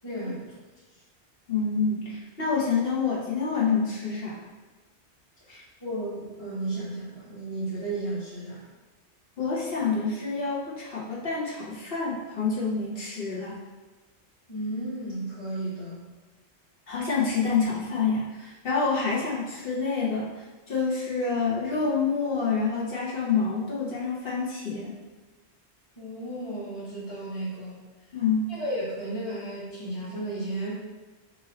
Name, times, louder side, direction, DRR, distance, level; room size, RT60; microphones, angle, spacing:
voice 1, 0.0-0.5 5.8-8.6 14.5-16.0 26.0-27.8 28.5-30.7, right 1 dB, 25° left, -11 dB, 1.1 m, -33 dB
voice 2, 1.5-4.4 5.5-5.6 9.4-13.6 16.9-24.9 28.1-28.5, left 5 dB, 60° left, -6 dB, 1.1 m, -27 dB
4.6 x 2.6 x 4.0 m, 1.3 s
omnidirectional pair, 1.1 m